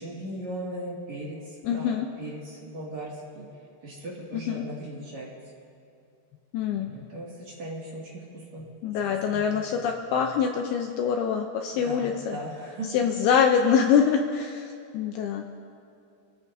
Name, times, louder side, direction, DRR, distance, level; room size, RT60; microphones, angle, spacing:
voice 1, 0.0-1.4 1.7-1.9 2.2-3.4 3.8-5.3 6.9-8.6 9.3-9.6 11.7-12.9, right 1 dB, 45° right, -5 dB, 3.0 m, -38 dB
voice 2, 1.6-2.1 4.3-4.6 6.5-6.9 8.8-12.4 12.9-14.7 14.9-15.5, left 7 dB, 80° left, 3 dB, 2.4 m, -24 dB
27.0 x 15.0 x 2.7 m, 2.5 s
omnidirectional pair, 5.1 m